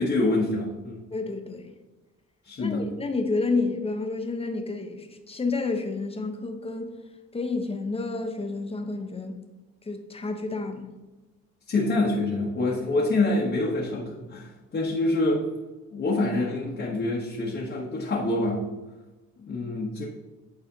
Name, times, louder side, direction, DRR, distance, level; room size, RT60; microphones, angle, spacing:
voice 1, 0.0-1.0 2.5-2.9 11.7-15.5 15.9-18.7 19.4-20.1, left 2 dB, 40° left, -4 dB, 1.1 m, -26 dB
voice 2, 1.1-1.6 2.6-6.9 7.3-9.4 9.8-10.9, left 3 dB, 20° left, 4 dB, 0.8 m, -30 dB
8.5 x 4.1 x 2.8 m, 1.1 s
cardioid pair, 90°, 30 cm